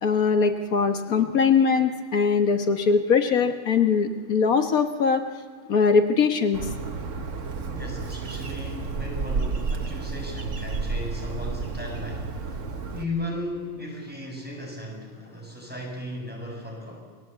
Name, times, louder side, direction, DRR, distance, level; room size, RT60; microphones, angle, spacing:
voice 1, 0.0-5.2 5.7-6.7, left 5 dB, 85° left, 6 dB, 1.8 m, -21 dB
Bird, 6.5-13.0, right 4 dB, 60° right, 1.7 m, -31 dB
voice 2, 7.7-17.0, left 1 dB, 5° right, -1 dB, 7.3 m, -36 dB
29.0 x 20.5 x 8.2 m, 1.5 s
omnidirectional pair, 1.5 m